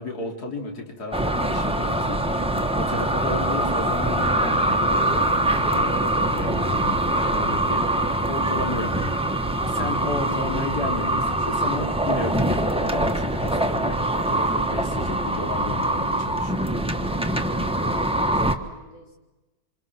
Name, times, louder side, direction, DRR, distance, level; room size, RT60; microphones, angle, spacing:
voice 1, 0.0-16.7, left 2 dB, 60° left, 2 dB, 3.6 m, -33 dB
sound 1, 1.1-18.5, right 1 dB, 5° right, 1.1 m, -23 dB
voice 2, 17.2-19.2, left 2 dB, 80° left, 0 dB, 4.8 m, -46 dB
27.5 x 26.0 x 6.1 m, 1.1 s
omnidirectional pair, 1.9 m